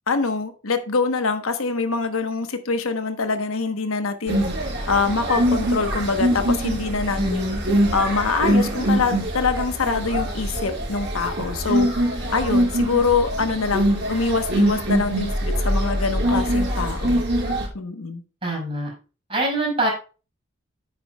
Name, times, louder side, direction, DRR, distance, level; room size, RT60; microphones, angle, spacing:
voice 1, 0.1-4.4 4.9-7.4 7.9-11.9 12.3-17.2 17.7-18.2, left 4 dB, 90° left, 8 dB, 1.1 m, -24 dB
sound 1, 4.3-17.7, right 1 dB, 55° right, 3.9 m, -23 dB
voice 2, 7.2-7.6 18.4-18.9 19.3-19.9, right 1 dB, 25° right, -2 dB, 5.0 m, -24 dB
9.5 x 8.7 x 2.3 m, 0.34 s
head